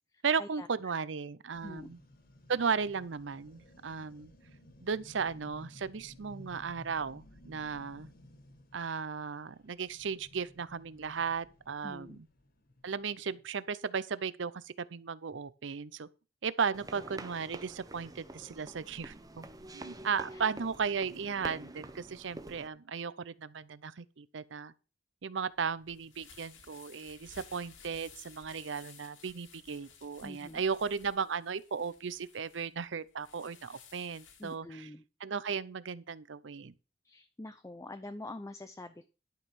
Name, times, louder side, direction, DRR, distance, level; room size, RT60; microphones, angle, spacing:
voice 1, 0.2-2.0 2.5-4.3 4.8-8.1 8.7-12.3 12.8-16.1 16.4-19.4 19.7-24.7 25.2-34.9 35.2-36.7, right 6 dB, 70° right, 0.6 m, -36 dB
sound 1, 1.5-13.4, left 1 dB, 50° left, 1.7 m, -56 dB
voice 2, 11.8-12.2 20.3-20.4 30.2-30.6 34.4-35.0 37.0-39.1, left 2 dB, 15° left, 0.6 m, -45 dB
sound 2, 16.7-22.7, right 2 dB, 20° right, 0.9 m, -47 dB
sound 3, 25.5-34.6, left 6 dB, 90° left, 2.3 m, -56 dB
11.5 x 5.4 x 6.2 m
head